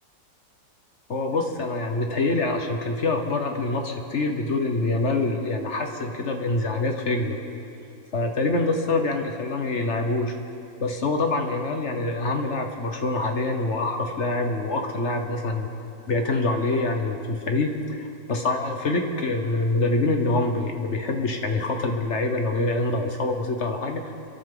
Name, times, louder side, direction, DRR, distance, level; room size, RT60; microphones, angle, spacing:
voice 1, 1.1-7.4 8.1-10.3 10.8-15.7 16.1-24.1, left 2 dB, 45° left, 4 dB, 1.1 m, -25 dB
28.5 x 11.5 x 3.8 m, 2.7 s
omnidirectional pair, 1.9 m